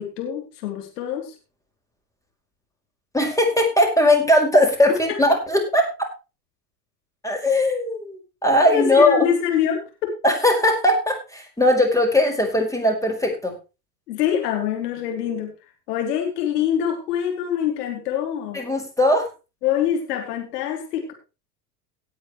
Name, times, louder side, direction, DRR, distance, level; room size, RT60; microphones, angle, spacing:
voice 1, 0.0-1.3 4.9-5.2 8.6-10.2 14.1-15.5 15.9-18.6 19.6-21.1, left 9 dB, 75° left, 3 dB, 3.5 m, -25 dB
voice 2, 3.1-5.9 7.2-9.3 10.2-13.6 18.5-19.3, left 1 dB, 5° left, 2 dB, 5.3 m, -19 dB
18.0 x 8.6 x 3.2 m, 0.29 s
hypercardioid pair, 85°, 48 cm